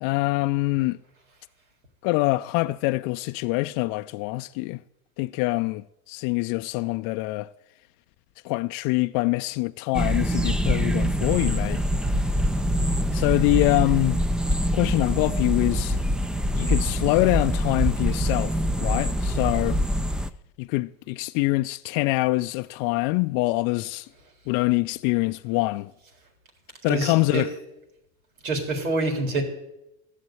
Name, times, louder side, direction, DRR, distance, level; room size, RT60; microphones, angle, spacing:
voice 1, 0.0-1.0 2.0-4.8 5.2-7.5 8.4-11.8 13.1-14.2 14.7-16.0 16.5-18.5 18.8-19.8 20.6-24.1 24.5-25.9 26.8-27.5, left 21 dB, 55° left, 0.5 m, -24 dB
sound 1, 9.9-20.3, equal, ahead, 0.4 m, -24 dB
voice 2, 26.9-27.5 28.4-29.4, right 2 dB, 90° right, 3.9 m, -26 dB
14.5 x 6.7 x 9.0 m
hypercardioid pair, 100°, 42 cm